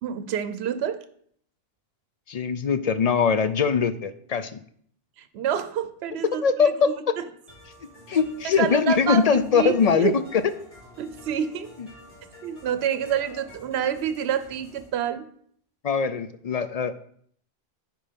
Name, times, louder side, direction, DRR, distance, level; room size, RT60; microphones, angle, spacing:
voice 1, 0.0-1.0 5.2-7.2 8.6-10.2 11.0-11.7 12.4-15.3, right 8 dB, 85° right, 12 dB, 0.9 m, -28 dB
voice 2, 2.3-4.6 6.4-6.9 8.1-10.5 15.8-16.9, left 6 dB, 55° left, 12 dB, 0.5 m, -22 dB
sound 1, 7.5-14.9, left 1 dB, 35° left, 3.5 m, -49 dB
9.9 x 4.5 x 5.1 m, 0.63 s
omnidirectional pair, 1.1 m